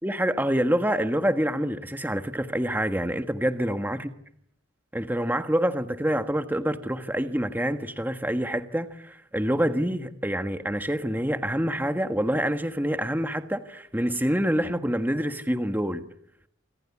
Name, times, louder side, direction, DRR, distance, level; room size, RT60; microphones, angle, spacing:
voice 1, 0.0-4.1 4.9-16.1, equal, 10° right, 8 dB, 1.4 m, -26 dB
27.0 x 25.0 x 8.5 m, 0.71 s
head